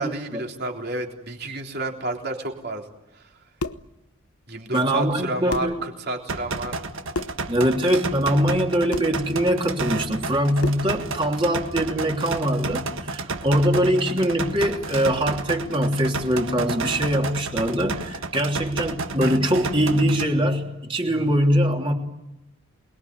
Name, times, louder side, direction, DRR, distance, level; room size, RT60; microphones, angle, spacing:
voice 1, 0.0-2.8 3.1-3.3 4.5-6.8, right 2 dB, 45° right, 2 dB, 3.5 m, -30 dB
sound 1, 3.3-3.9 5.1-5.2 5.5-5.8 7.1-7.5 8.9-9.2 10.6-10.9, left 3 dB, 90° left, 1.0 m, -31 dB
voice 2, 4.7-5.8 7.5-21.9, equal, 25° right, 1 dB, 3.1 m, -22 dB
sound 2, 6.3-20.3, right 3 dB, 65° right, 1.5 m, -32 dB
28.0 x 21.5 x 9.6 m, 0.93 s
head